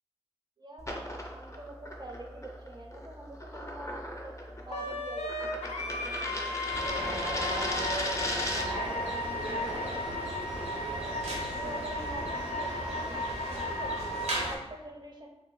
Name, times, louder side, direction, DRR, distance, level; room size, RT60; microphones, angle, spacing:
voice 1, 0.6-7.1 7.7-10.9 11.6-13.2 13.5-15.3, right 1 dB, 40° right, 1 dB, 0.4 m, -46 dB
sound 1, 0.8-8.9, left 1 dB, 25° left, 0.5 m, -37 dB
Wind instrument woodwind instrument, 4.7-14.6, left 2 dB, 85° left, 0.4 m, -36 dB
sound 2, 6.7-14.6, right 1 dB, 85° right, 0.7 m, -36 dB
3.1 x 2.1 x 3.1 m, 1.1 s
wide cardioid pair, 90°, 11 cm